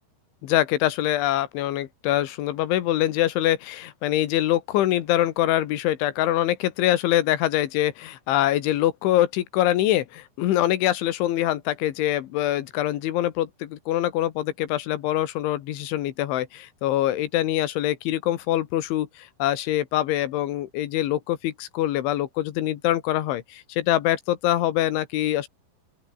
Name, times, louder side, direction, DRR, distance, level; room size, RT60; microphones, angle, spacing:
voice 1, 0.4-25.5, left 13 dB, 90° left, 4.0 m, -24 dB
open air
omnidirectional pair, 5.3 m